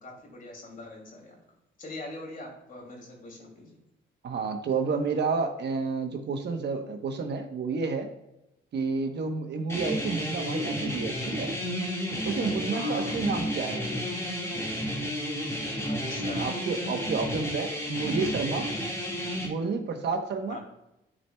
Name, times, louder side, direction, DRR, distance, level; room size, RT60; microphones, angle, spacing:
voice 1, 0.0-1.4 1.8-3.8 12.7-13.2 15.9-16.6 20.5-20.6, left 2 dB, 45° left, 0 dB, 2.7 m, -42 dB
voice 2, 4.2-8.1 8.7-11.5 12.2-13.9 16.4-18.7 19.4-20.6, right 4 dB, 60° right, 5 dB, 1.0 m, -30 dB
sound 1, 9.7-19.5, equal, 15° left, 1.8 m, -31 dB
12.5 x 4.4 x 2.3 m, 0.87 s
cardioid pair, 90°, 20 cm